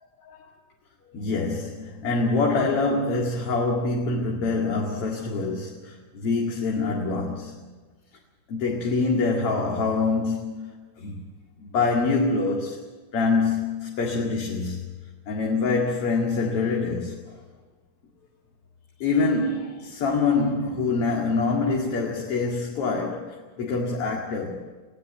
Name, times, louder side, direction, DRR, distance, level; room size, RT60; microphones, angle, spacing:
voice 1, 1.1-7.7 8.5-11.2 11.6-14.8 15.3-17.4 19.0-24.5, left 3 dB, 55° left, 3.0 m, -25 dB
21.0 x 17.0 x 7.7 m
omnidirectional pair, 3.4 m